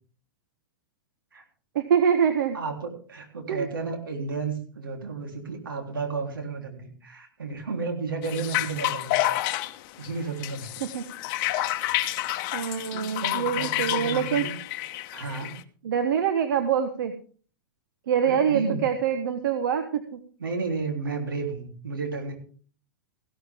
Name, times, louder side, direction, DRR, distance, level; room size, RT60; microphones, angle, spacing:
voice 1, 1.7-2.6 3.5-3.7 10.8-11.0 12.5-14.4 15.8-17.1 18.1-20.2, right 8 dB, 70° right, 8 dB, 1.4 m, -25 dB
voice 2, 2.5-9.3 10.0-10.7 12.9-14.5 15.1-15.6 18.2-18.8 20.4-22.4, right 4 dB, 85° right, 3 dB, 3.6 m, -32 dB
sound 1, 8.2-15.6, left 15 dB, 45° left, 1.0 m, -29 dB
16.0 x 12.5 x 3.6 m, 0.42 s
hypercardioid pair, 110°, 11 cm